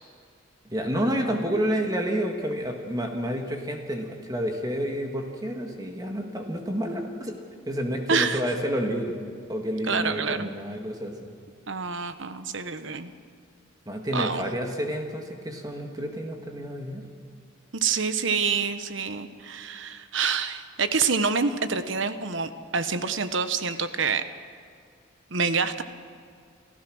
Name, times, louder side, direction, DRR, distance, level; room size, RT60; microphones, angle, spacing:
voice 1, 0.7-9.2 9.5-11.3 13.9-17.0, equal, 20° right, 3 dB, 1.8 m, -29 dB
voice 2, 8.1-8.4 9.9-10.5 11.7-13.1 14.1-14.5 17.7-24.2 25.3-25.8, right 5 dB, 65° right, 11 dB, 1.1 m, -27 dB
28.5 x 14.5 x 6.3 m, 2.2 s
head